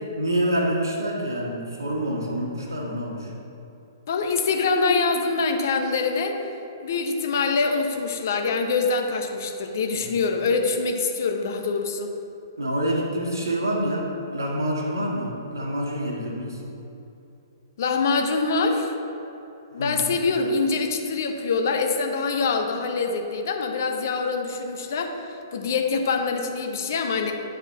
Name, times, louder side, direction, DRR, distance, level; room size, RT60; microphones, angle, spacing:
voice 1, 0.2-3.3 9.9-10.1 12.6-16.6 19.7-20.0, right 1 dB, 70° right, -2 dB, 1.6 m, -27 dB
voice 2, 4.1-6.4 6.8-12.1 17.8-18.9 19.7-27.3, left 4 dB, 50° left, 4 dB, 0.8 m, -24 dB
9.5 x 4.9 x 3.9 m, 2.9 s
figure-of-eight pair, 115°, 2 cm